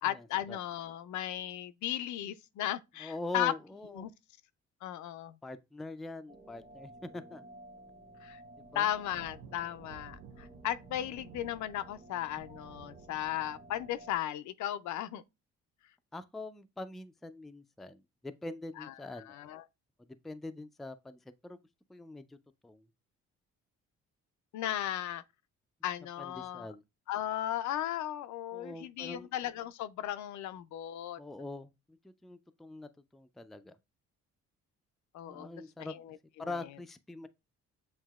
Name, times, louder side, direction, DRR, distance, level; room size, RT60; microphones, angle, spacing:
voice 1, 0.0-3.5 3.9-4.1 4.8-5.4 8.2-8.4 8.7-15.2 18.8-19.6 24.5-25.2 25.8-26.7 27.1-31.2 35.1-35.5 35.8-36.2 36.4-36.6, left 12 dB, 75° left, 0.5 m, -36 dB
voice 2, 3.0-4.1 5.4-7.4 8.7-8.9 16.1-19.4 20.2-21.6 21.9-22.4 22.6-22.9 26.2-26.8 28.5-29.3 31.2-33.7 35.3-36.0 36.4-37.3, left 2 dB, ahead, 0.3 m, -43 dB
sound 1, 6.3-14.2, right 1 dB, 30° right, 0.9 m, -54 dB
sound 2, 7.2-7.4 7.6-13.9, right 5 dB, 90° right, 0.7 m, -55 dB
7.3 x 2.7 x 2.3 m
cardioid pair, 90°, 30 cm